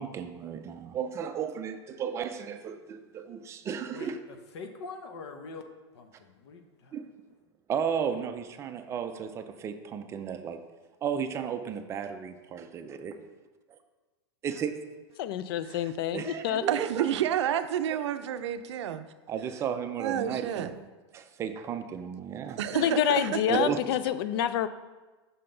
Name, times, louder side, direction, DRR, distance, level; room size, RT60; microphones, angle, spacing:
voice 1, 0.0-4.2 6.9-7.1 7.7-10.6 11.0-13.2 13.7-13.8 14.4-14.8 16.1-17.1 19.3-20.7 21.1-22.6 23.5-23.8, right 7 dB, 20° right, 0.4 m, -34 dB
voice 2, 4.5-5.6 5.9-7.0, left 4 dB, 70° left, 0.8 m, -43 dB
voice 3, 15.2-16.6 22.7-24.7, left 10 dB, 55° left, 0.4 m, -27 dB
voice 4, 16.7-19.0 20.0-20.7 22.6-23.4, right 10 dB, 75° right, 0.5 m, -29 dB
5.7 x 5.6 x 3.8 m
supercardioid pair, 145°, 15 cm